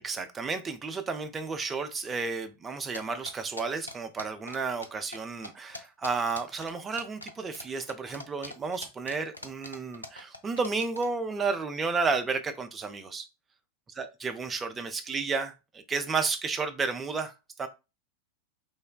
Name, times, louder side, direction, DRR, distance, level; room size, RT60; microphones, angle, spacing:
voice 1, 0.0-13.3 14.0-17.3 17.6-17.7, right 4 dB, 20° right, 0.4 m, -32 dB
sound 1, 2.9-4.9 5.1-5.2 5.4-11.1, left 2 dB, 85° left, 0.4 m, -42 dB
3.2 x 2.1 x 2.2 m
figure-of-eight pair, 90°, 0 cm